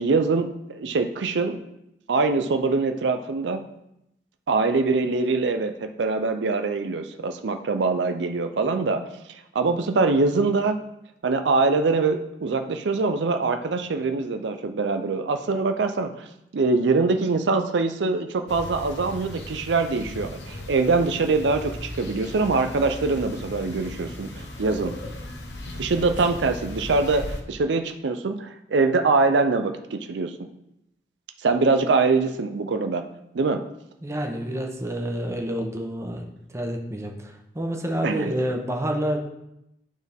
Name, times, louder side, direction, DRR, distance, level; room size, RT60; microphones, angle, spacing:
voice 1, 0.0-1.6 2.1-3.7 4.5-9.0 9.5-10.8 11.2-16.3 16.5-24.9 25.8-30.4 31.4-33.0 33.3-33.6 38.0-38.3, right 3 dB, 85° right, 7 dB, 0.5 m, -23 dB
sound 1, 18.5-27.4, left 1 dB, 80° left, 1.1 m, -37 dB
voice 2, 34.0-36.3 36.5-39.2, equal, 15° right, 2 dB, 0.9 m, -28 dB
11.5 x 4.1 x 3.6 m, 0.83 s
head